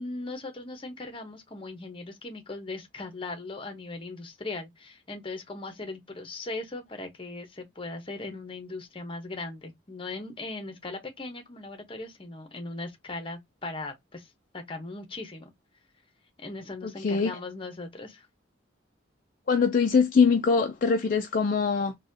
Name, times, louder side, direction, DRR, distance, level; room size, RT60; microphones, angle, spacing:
voice 1, 0.0-14.3 14.5-15.5 16.4-18.3, left 2 dB, 25° left, 0.8 m, -39 dB
voice 2, 16.8-17.3 19.5-21.9, left 5 dB, 45° left, 0.3 m, -23 dB
4.0 x 2.3 x 2.6 m
head